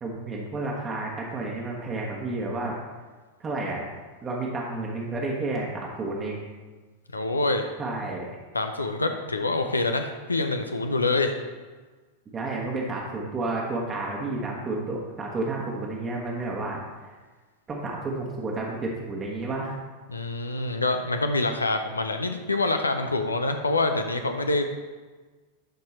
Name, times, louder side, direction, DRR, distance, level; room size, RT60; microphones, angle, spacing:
voice 1, 0.0-2.8 3.4-3.8 4.2-6.4 7.8-8.3 12.3-16.8 17.7-19.8, right 2 dB, 20° right, -3 dB, 1.3 m, -31 dB
voice 2, 7.1-7.7 8.5-11.4 20.1-24.7, left 2 dB, 80° left, 6 dB, 0.5 m, -26 dB
11.5 x 4.5 x 4.2 m, 1.3 s
figure-of-eight pair, 90°, 0 cm